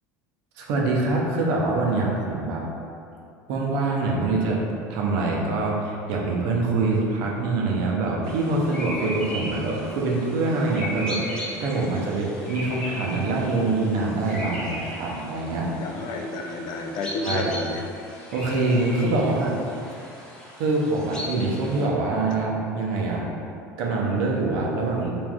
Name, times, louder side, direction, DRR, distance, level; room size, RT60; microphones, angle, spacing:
voice 1, 0.6-2.6 3.5-4.6 4.9-15.7 17.2-17.5 18.3-19.6 20.6-23.3 23.8-25.1, right 3 dB, 65° right, -2 dB, 0.5 m, -24 dB
sound 1, 8.2-21.9, equal, 10° left, 0.8 m, -37 dB
voice 2, 15.7-17.8, left 3 dB, 50° left, 3 dB, 0.3 m, -30 dB
3.4 x 2.5 x 2.2 m, 2.5 s
hypercardioid pair, 75°, 9 cm